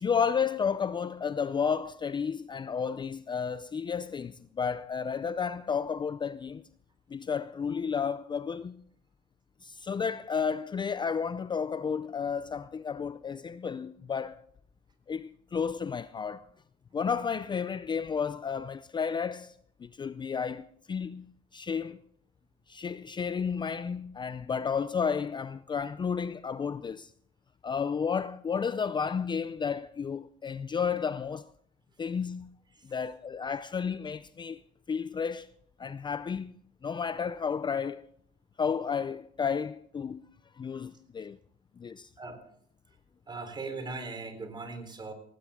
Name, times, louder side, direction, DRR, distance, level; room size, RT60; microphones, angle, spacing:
voice 1, 0.0-6.6 7.1-8.8 9.6-14.4 15.1-16.4 16.9-19.5 19.8-22.0 22.7-27.1 27.6-31.4 32.0-32.5 32.9-34.6 34.9-35.5 35.8-36.5 36.8-38.1 38.6-40.2 40.6-41.4 41.8-42.1, left 6 dB, 25° left, 0.5 m, -32 dB
voice 2, 42.2-42.5 43.3-45.1, right 3 dB, 25° right, 3.8 m, -39 dB
18.5 x 16.0 x 3.7 m
cardioid pair, 110°, 17 cm